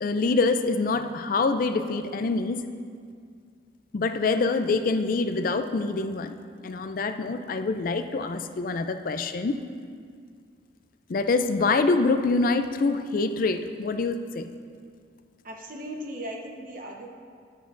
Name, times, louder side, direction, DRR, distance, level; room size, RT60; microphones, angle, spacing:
voice 1, 0.0-2.7 3.9-6.3 6.6-9.6 11.1-14.5, left 3 dB, 45° left, 9 dB, 0.4 m, -25 dB
voice 2, 15.4-17.1, equal, 45° right, 1 dB, 1.0 m, -37 dB
12.0 x 10.0 x 2.5 m, 2.2 s
head